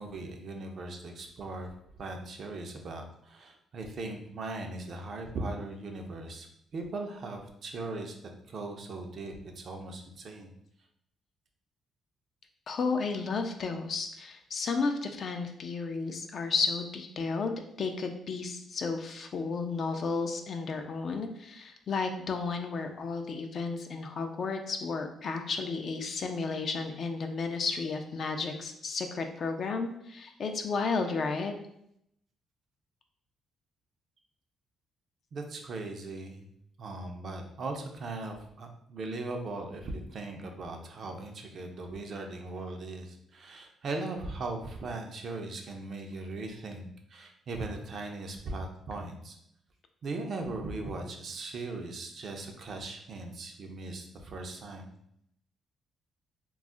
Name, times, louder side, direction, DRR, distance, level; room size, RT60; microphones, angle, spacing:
voice 1, 0.0-6.5 6.7-8.2 8.5-10.5 35.3-36.4 36.8-49.3 50.0-54.9, right 2 dB, 55° right, 3 dB, 0.5 m, -39 dB
voice 2, 12.7-31.5, left 4 dB, 55° left, 5 dB, 0.4 m, -33 dB
2.3 x 2.0 x 3.7 m, 0.74 s
cardioid pair, 90°, 0 cm